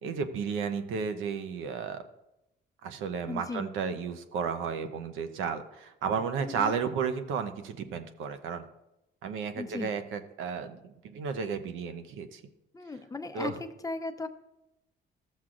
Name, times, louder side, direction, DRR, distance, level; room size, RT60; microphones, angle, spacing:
voice 1, 0.0-2.0 2.8-8.7 9.2-12.4 13.3-13.6, right 6 dB, 90° right, 9 dB, 0.7 m, -33 dB
voice 2, 3.3-3.7 6.4-6.8 9.6-9.9 12.7-14.3, left 3 dB, 15° left, 7 dB, 0.7 m, -37 dB
14.0 x 7.3 x 2.5 m, 0.89 s
cardioid pair, 90°, 20 cm